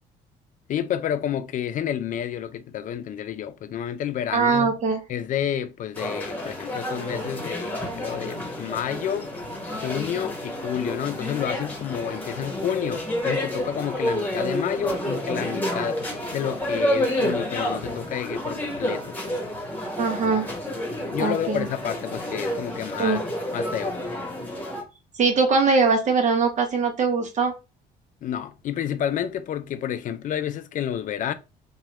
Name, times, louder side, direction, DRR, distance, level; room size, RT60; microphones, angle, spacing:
voice 1, 0.7-4.7 5.1-9.3 9.8-16.0 16.3-19.4 21.1-23.2 23.5-24.1 28.2-31.3, left 9 dB, 50° left, 0.5 m, -30 dB
voice 2, 4.3-5.0 20.0-20.5 21.2-21.7 23.0-23.2 25.2-27.5, right 4 dB, 45° right, 1.0 m, -21 dB
sound 1, 5.9-24.8, left 1 dB, 10° left, 1.3 m, -30 dB
3.0 x 2.4 x 2.9 m
cardioid pair, 110°, 17 cm